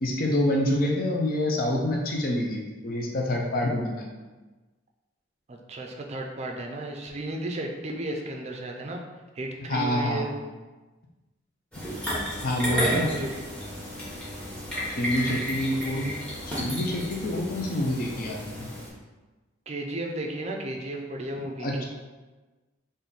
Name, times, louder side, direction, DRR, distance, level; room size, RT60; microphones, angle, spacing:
voice 1, 0.0-4.0 9.7-10.3 12.4-13.1 14.9-16.1 16.5-18.7 21.6-21.8, left 1 dB, 50° left, 0 dB, 0.6 m, -27 dB
voice 2, 5.5-9.0 9.3-10.3 12.4-13.3 19.7-21.8, right 1 dB, 35° right, 2 dB, 0.5 m, -34 dB
sound 1, 11.7-18.9, equal, 5° left, 0.9 m, -33 dB
3.6 x 2.6 x 4.0 m, 1.2 s
head